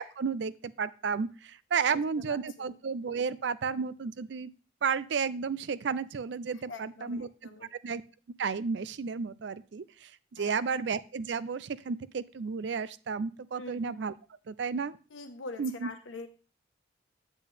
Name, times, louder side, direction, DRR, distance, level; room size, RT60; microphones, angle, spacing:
voice 1, 0.0-4.5 4.8-7.3 7.7-8.0 8.4-14.1 14.5-15.0 15.6-15.9, right 5 dB, 65° right, 17 dB, 0.4 m, -32 dB
voice 2, 2.3-2.7 6.7-7.7 10.4-10.6 13.5-14.0 15.1-16.3, left 3 dB, 85° left, 7 dB, 1.2 m, -44 dB
8.4 x 8.2 x 3.4 m, 0.35 s
head